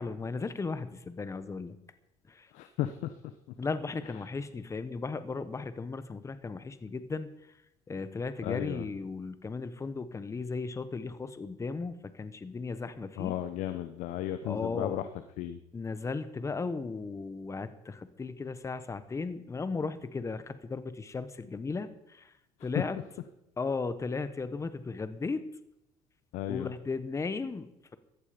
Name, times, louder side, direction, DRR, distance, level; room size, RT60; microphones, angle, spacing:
voice 1, 0.0-1.7 2.3-2.5 3.6-7.3 7.9-13.3 14.4-15.0 15.7-22.3 22.6-23.1 23.6-25.4 26.5-28.0, left 4 dB, 25° left, 12 dB, 1.2 m, -36 dB
voice 2, 2.5-2.9 8.4-8.9 13.2-15.0 15.4-15.6 26.3-26.7, left 12 dB, 75° left, 10 dB, 0.9 m, -34 dB
15.0 x 13.0 x 5.2 m, 0.83 s
supercardioid pair, 85°, 12 cm